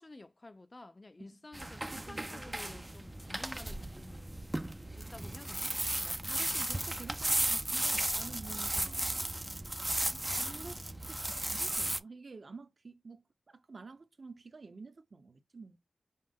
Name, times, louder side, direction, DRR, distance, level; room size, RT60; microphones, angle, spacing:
voice 1, 0.0-5.8 6.6-6.7, left 2 dB, 30° left, 0.6 m, -52 dB
sound 1, 1.5-12.0, right 1 dB, 15° right, 0.4 m, -35 dB
voice 2, 1.9-2.8 6.0-9.2 10.3-15.8, right 4 dB, 55° right, 0.7 m, -50 dB
5.5 x 2.1 x 3.5 m
wide cardioid pair, 105°, 0 cm